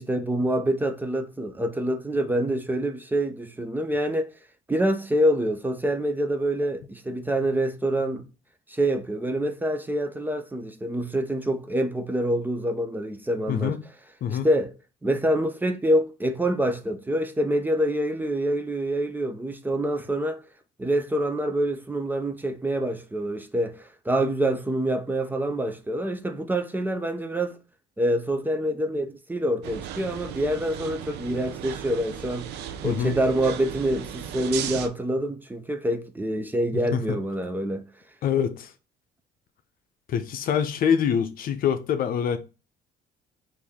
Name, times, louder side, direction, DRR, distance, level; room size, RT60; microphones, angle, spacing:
voice 1, 0.0-4.3 4.7-8.2 8.7-13.7 14.3-14.7 15.0-20.4 20.8-27.6 28.0-32.5 32.8-37.8, right 1 dB, 10° right, 0.5 m, -26 dB
voice 2, 13.5-13.8 14.2-14.5 32.8-33.1 36.7-37.2 38.2-38.7 40.1-42.4, left 8 dB, 60° left, 0.6 m, -25 dB
sound 1, 29.6-34.9, right 9 dB, 85° right, 0.5 m, -36 dB
4.6 x 2.6 x 3.5 m
cardioid pair, 110°, 17 cm